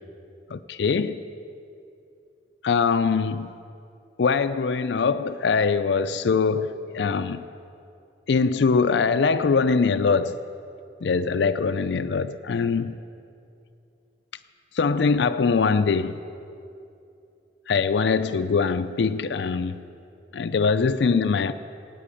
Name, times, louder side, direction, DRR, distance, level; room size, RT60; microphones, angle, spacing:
voice 1, 0.5-1.1 2.6-3.5 4.2-7.5 8.3-10.4 11.0-13.0 14.8-16.2 17.7-19.8 20.3-21.5, left 5 dB, 75° left, 0.4 m, -22 dB
14.0 x 9.3 x 8.4 m
head